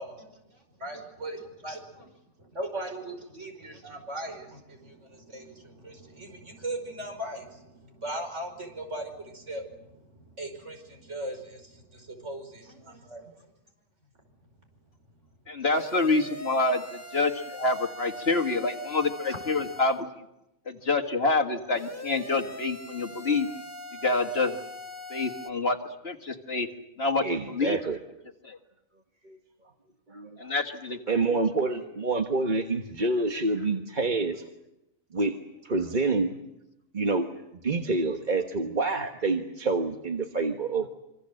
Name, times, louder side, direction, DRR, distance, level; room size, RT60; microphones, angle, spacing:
voice 1, 0.0-2.1 2.4-13.3 19.3-19.4, right 1 dB, 60° right, 4 dB, 5.6 m, -39 dB
voice 2, 15.5-20.1 20.7-23.5 24.0-24.6 25.1-25.8 26.0-26.7 27.0-27.8 30.4-31.5, left 3 dB, 50° left, 4 dB, 1.9 m, -27 dB
sound 1, 15.7-20.0 21.7-25.5, left 1 dB, 10° left, 1.2 m, -42 dB
voice 3, 27.2-28.0 29.2-29.4 30.1-30.5 31.1-34.4 35.1-35.4 35.6-36.4 36.9-37.3 37.6-40.9, right 3 dB, 35° right, 4 dB, 1.4 m, -27 dB
26.0 x 25.5 x 7.7 m, 0.89 s
omnidirectional pair, 1.4 m